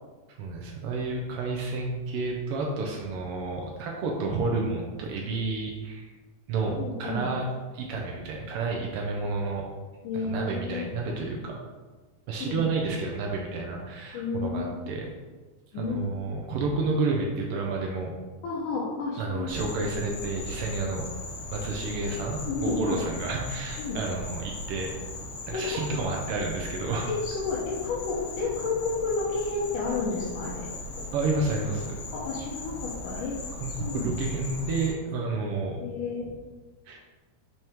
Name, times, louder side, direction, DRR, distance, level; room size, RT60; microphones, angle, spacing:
voice 1, 0.4-6.1 6.5-7.4 7.7-9.6 10.2-11.5 12.3-15.1 15.7-18.1 19.2-21.1 21.5-24.9 25.5-27.1 31.1-31.9 33.6-35.8 36.9-37.0, right 3 dB, 85° right, 0 dB, 1.2 m, -30 dB
voice 2, 6.8-7.3 10.0-10.9 12.4-12.7 14.1-14.9 15.7-16.2 18.4-19.5 22.4-23.0 23.8-24.0 25.5-25.8 27.1-30.7 31.5-33.4 33.8-34.2 35.8-36.3, left 4 dB, 90° left, -7 dB, 2.6 m, -31 dB
Insect, 19.5-34.9, left 2 dB, 70° left, 2.6 m, -39 dB
5.9 x 5.5 x 3.6 m, 1.3 s
omnidirectional pair, 3.5 m